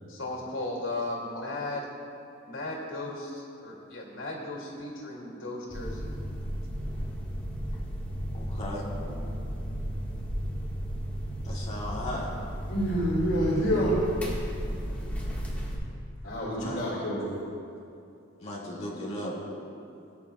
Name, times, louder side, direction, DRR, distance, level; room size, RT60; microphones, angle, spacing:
voice 1, 0.1-1.9 2.5-6.1, left 2 dB, 90° left, -2 dB, 2.5 m, -36 dB
sound 1, 5.7-15.8, equal, 10° left, 1.6 m, -34 dB
voice 2, 8.3-8.9 11.4-12.3 16.5-17.0 18.4-19.3, left 1 dB, 35° left, -5 dB, 2.1 m, -37 dB
voice 3, 12.7-14.0 16.2-17.2 18.9-19.6, equal, 65° left, -8 dB, 2.5 m, -28 dB
19.5 x 9.9 x 2.4 m, 2.6 s
head